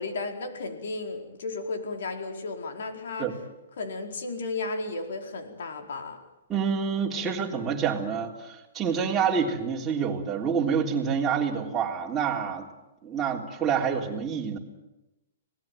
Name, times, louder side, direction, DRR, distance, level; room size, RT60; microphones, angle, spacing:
voice 1, 0.0-3.3 3.8-6.2, left 3 dB, 70° left, 4 dB, 4.5 m, -34 dB
voice 2, 6.5-12.7 13.0-14.6, right 6 dB, 15° right, -2 dB, 3.5 m, -27 dB
26.0 x 18.5 x 9.3 m, 0.96 s
hypercardioid pair, 150°, 0 cm